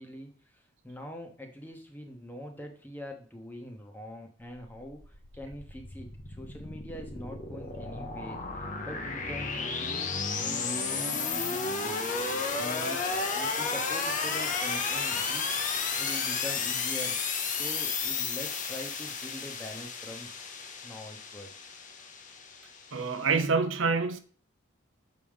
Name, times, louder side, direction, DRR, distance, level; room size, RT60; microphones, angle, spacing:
voice 1, 0.0-12.0 12.5-15.5 16.0-17.2 17.4-20.3 20.8-21.5, left 1 dB, 10° left, 1.0 m, -43 dB
sound 1, 4.7-23.3, left 4 dB, 40° left, 0.8 m, -33 dB
voice 2, 22.9-24.2, right 4 dB, 70° right, 0.7 m, -26 dB
6.8 x 5.1 x 3.5 m
head